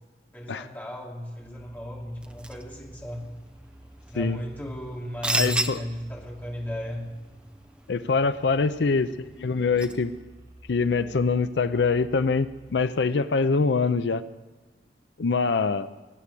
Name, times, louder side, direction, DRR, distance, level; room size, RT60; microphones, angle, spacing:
voice 1, 0.3-3.2 4.1-7.1, equal, 10° left, -2 dB, 2.7 m, -35 dB
sound 1, 1.4-12.9, right 1 dB, 25° right, 3.4 m, -52 dB
sound 2, 2.2-10.2, right 2 dB, 5° right, 0.7 m, -36 dB
voice 2, 5.3-5.8 7.9-10.1 10.7-14.2 15.2-15.9, left 4 dB, 85° left, 13 dB, 0.5 m, -24 dB
20.5 x 8.5 x 8.3 m, 1.3 s
head